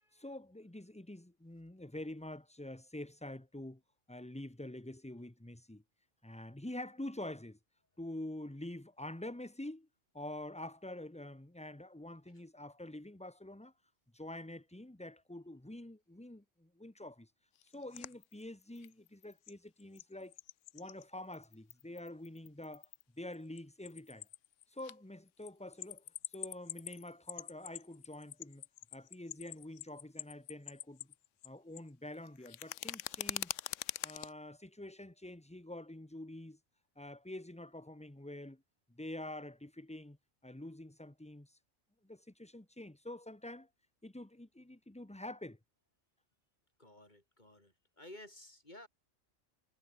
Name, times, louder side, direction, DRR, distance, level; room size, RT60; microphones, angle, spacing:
voice 1, 0.1-3.8 4.1-5.8 6.2-7.6 8.0-9.9 10.1-13.7 14.1-17.3 17.6-20.3 20.7-22.9 23.1-24.3 24.7-28.6 28.9-31.1 31.4-33.6 34.0-36.6 37.0-38.6 38.9-40.2 40.4-41.6 42.0-43.7 44.0-45.6, left 1 dB, 5° left, 1.2 m, -47 dB
sound 1, 17.6-19.5 19.8-21.0 21.3-23.0 23.3-24.9 25.3-31.5 31.7-34.3, left 14 dB, 70° left, 0.9 m, -44 dB
voice 2, 46.8-48.9, left 1 dB, 35° left, 5.6 m, -54 dB
omnidirectional pair, 1.4 m